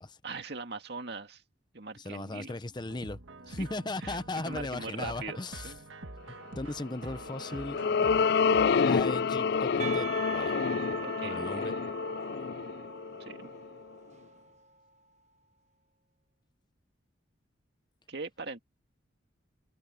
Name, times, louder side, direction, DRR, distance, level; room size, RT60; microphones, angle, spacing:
voice 1, 0.2-1.4 1.7-2.6 3.6-3.7 4.0-5.9 11.0-11.7 13.2-13.5 18.1-18.6, right 3 dB, 60° right, 2.2 m, -41 dB
voice 2, 2.0-3.2 3.5-5.7 6.6-7.8 8.9-10.5 11.2-11.7, left 2 dB, 25° left, 0.7 m, -37 dB
sound 1, 2.8-8.9, right 2 dB, 85° right, 1.7 m, -46 dB
sound 2, 7.1-13.7, left 5 dB, 55° left, 0.4 m, -28 dB
Percussion, 9.8-14.6, right 5 dB, 35° right, 1.1 m, -41 dB
head